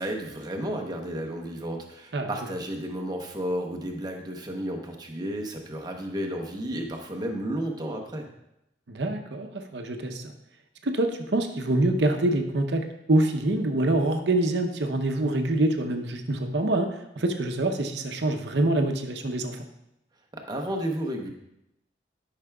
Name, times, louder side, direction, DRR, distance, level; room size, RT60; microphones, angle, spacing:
voice 1, 0.0-8.3 20.3-21.3, right 1 dB, 25° right, 1 dB, 0.9 m, -32 dB
voice 2, 8.9-10.2 10.8-16.9 17.2-19.6, right 2 dB, 80° right, 4 dB, 0.8 m, -25 dB
12.0 x 5.8 x 2.3 m, 0.85 s
head